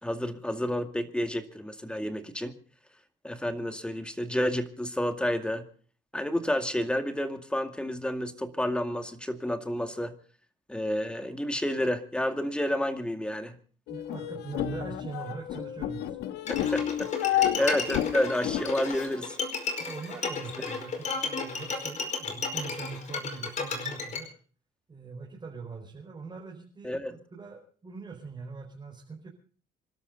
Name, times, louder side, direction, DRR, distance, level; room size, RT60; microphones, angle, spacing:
voice 1, 0.0-2.6 3.2-5.7 6.1-10.2 10.7-13.6 16.5-19.4 26.8-27.2, left 1 dB, 5° left, 7 dB, 2.1 m, -30 dB
sound 1, 13.9-19.0, left 12 dB, 80° left, 1.4 m, -31 dB
voice 2, 13.9-16.2 19.8-24.3 24.9-27.0 27.3-29.3, right 4 dB, 25° right, -2 dB, 4.7 m, -42 dB
Bowed string instrument, 16.5-24.2, left 4 dB, 45° left, 4.9 m, -33 dB
27.0 x 12.5 x 4.0 m, 0.43 s
cardioid pair, 110°, 17 cm